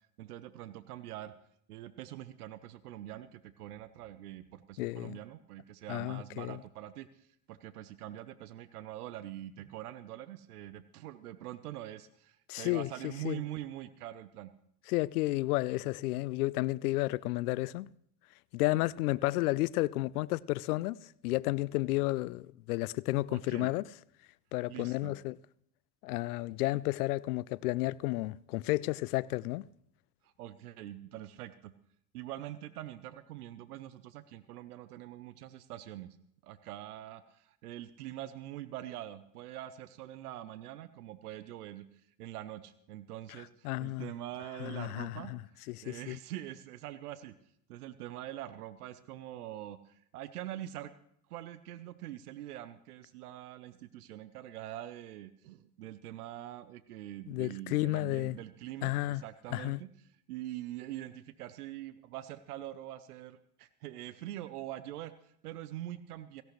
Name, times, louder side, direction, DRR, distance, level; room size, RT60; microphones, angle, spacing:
voice 1, 0.2-1.3 1.7-14.5 23.3-23.7 24.7-25.1 30.2-31.7 32.1-36.2 36.4-41.9 42.2-47.3 47.7-50.9 51.3-66.4, right 13 dB, 80° right, 0.8 m, -44 dB
voice 2, 4.8-5.2 5.9-6.6 12.5-12.9 13.2-13.4 14.9-17.9 18.5-21.0 21.2-23.8 24.5-25.4 26.0-29.6 43.6-44.1 44.6-45.4 45.7-46.2 57.3-58.4 58.8-59.2 59.5-59.8, left 19 dB, 80° left, 0.6 m, -32 dB
17.0 x 16.5 x 3.2 m
hypercardioid pair, 75°, 45 cm